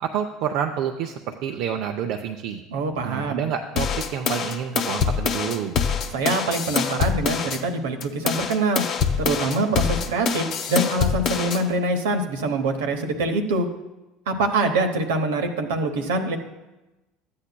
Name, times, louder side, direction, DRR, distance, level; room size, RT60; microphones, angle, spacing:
voice 1, 0.0-2.6 3.0-5.8, right 8 dB, 65° right, 4 dB, 0.5 m, -28 dB
voice 2, 2.7-3.5 6.1-8.8 9.2-13.7 14.3-16.4, right 2 dB, 85° right, 4 dB, 0.9 m, -24 dB
sound 1, 3.8-7.6 8.0-11.6, left 7 dB, 55° left, 0.8 m, -25 dB
13.0 x 8.6 x 2.2 m, 1.0 s
hypercardioid pair, 85°, 0 cm